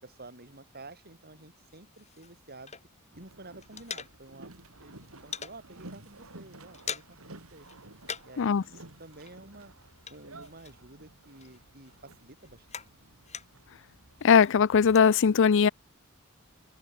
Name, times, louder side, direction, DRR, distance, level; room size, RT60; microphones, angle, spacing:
voice 1, 0.0-2.8 3.2-5.0 5.2-7.7 8.2-9.7 10.1-13.2, right 2 dB, 45° right, 6.0 m, -50 dB
sound 1, 1.7-3.2 3.4-4.6 4.8-5.6 6.0-6.2 6.5-7.3 7.6-8.5 8.7-11.1 11.4-13.7 14.2-15.1, left 7 dB, 30° left, 6.6 m, -43 dB
Boat Water vehicle, 3.1-14.5, right 2 dB, 85° right, 3.5 m, -52 dB
voice 2, 14.2-15.7, left 6 dB, 60° left, 0.5 m, -20 dB
head